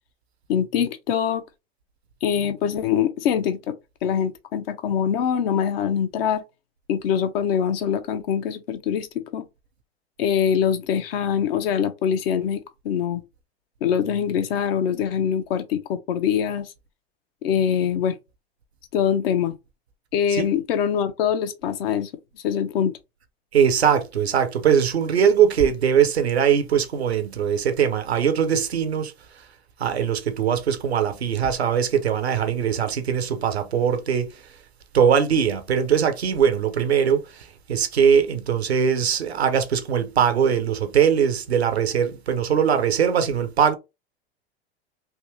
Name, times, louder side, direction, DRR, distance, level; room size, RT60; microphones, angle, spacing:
voice 1, 0.5-1.4 2.2-3.7 4.0-6.4 6.9-9.1 9.3-9.5 10.2-13.2 13.8-16.7 17.4-18.2 18.9-19.5 20.1-22.1 22.4-23.0, left 8 dB, 65° left, 0.8 m, -23 dB
voice 2, 23.5-29.1 29.8-34.3 34.9-37.2 37.7-43.7, right 8 dB, 85° right, 0.7 m, -21 dB
3.5 x 2.7 x 3.0 m
hypercardioid pair, 85°, 31 cm